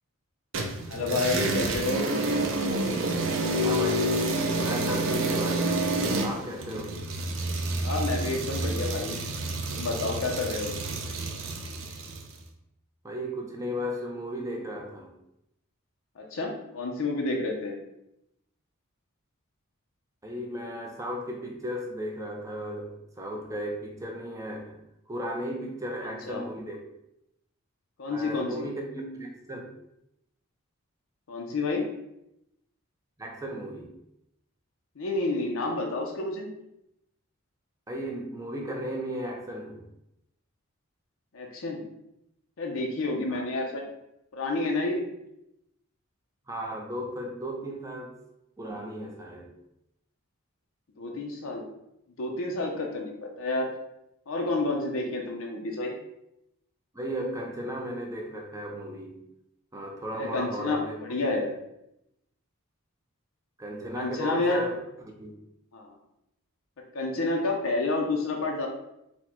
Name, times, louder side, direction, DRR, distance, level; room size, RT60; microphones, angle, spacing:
sound 1, 0.5-12.3, right 2 dB, 60° right, 0.5 m, -29 dB
voice 1, 0.9-2.2 7.8-9.2 9.7-10.9 16.2-17.8 26.0-26.4 28.0-28.7 31.3-31.9 35.0-36.5 41.3-41.8 42.6-43.8 44.3-45.1 51.0-51.7 52.2-53.7 54.3-55.9 60.2-61.5 63.9-64.7 65.7-65.9 66.9-68.7, left 2 dB, 70° left, 1 dB, 0.6 m, -29 dB
voice 2, 3.6-4.3 4.6-5.7 6.2-7.0 13.0-15.1 20.2-24.8 25.1-26.8 28.1-29.6 33.2-33.9 37.9-39.8 43.3-43.4 46.5-48.1 48.6-49.5 56.9-59.2 59.7-61.5 63.6-64.7 65.0-65.4, equal, 15° right, 1 dB, 0.5 m, -35 dB
4.3 x 2.2 x 4.3 m, 0.83 s
head